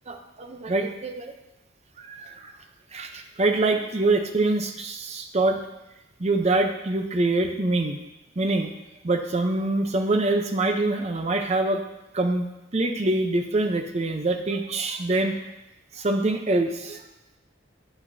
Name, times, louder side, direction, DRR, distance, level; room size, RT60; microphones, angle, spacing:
voice 1, 0.1-1.3 2.0-2.6 2.9-5.6 6.2-8.0 8.4-8.7 9.0-11.8 12.1-15.4 16.0-17.0, right 2 dB, 35° right, 5 dB, 0.7 m, -25 dB
8.4 x 7.9 x 2.7 m, 0.93 s
head